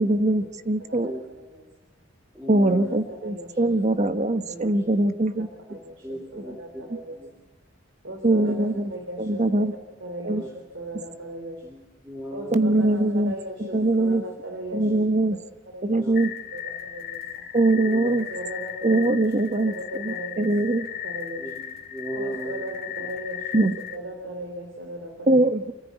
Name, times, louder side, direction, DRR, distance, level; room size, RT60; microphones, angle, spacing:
voice 1, 0.0-1.1 2.5-5.5 6.3-6.4 8.2-8.9 9.2-9.7 10.2-10.4 12.5-13.3 13.6-14.2 14.7-15.4 15.8-16.3 17.5-18.3 18.8-20.9 23.5-23.7 25.3-25.7, right 2 dB, 40° right, 9 dB, 1.2 m, -22 dB
voice 2, 0.8-1.6 2.6-3.7 4.5-4.8 5.7-7.2 8.0-8.6 8.9-9.4 10.0-11.7 12.3-15.0 15.7-16.1 16.5-17.5 18.0-19.1 19.7-20.5 21.0-21.5 22.1-23.7 23.9-25.5, right 1 dB, 70° right, 3 dB, 3.6 m, -37 dB
voice 3, 2.3-3.0 6.0-6.8 7.1-7.3 8.3-8.5 10.3-10.5 11.6-12.8 14.8-15.0 16.0-16.2 17.7-18.1 21.4-22.6, right 1 dB, 10° right, 0 dB, 3.3 m, -36 dB
sound 1, 16.1-24.0, left 10 dB, 55° left, 2.3 m, -36 dB
28.5 x 14.5 x 8.2 m, 1.2 s
head